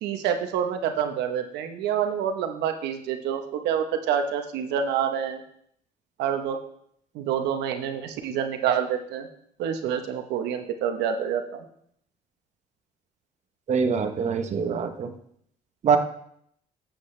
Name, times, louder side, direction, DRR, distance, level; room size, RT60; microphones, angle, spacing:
voice 1, 0.0-5.4 6.2-6.6 7.1-9.3 9.6-11.7, right 8 dB, 85° right, 6 dB, 1.0 m, -27 dB
voice 2, 13.7-15.1 15.8-16.0, right 6 dB, 45° right, 7 dB, 0.9 m, -24 dB
13.0 x 7.8 x 3.3 m, 0.70 s
cardioid pair, 110°, 17 cm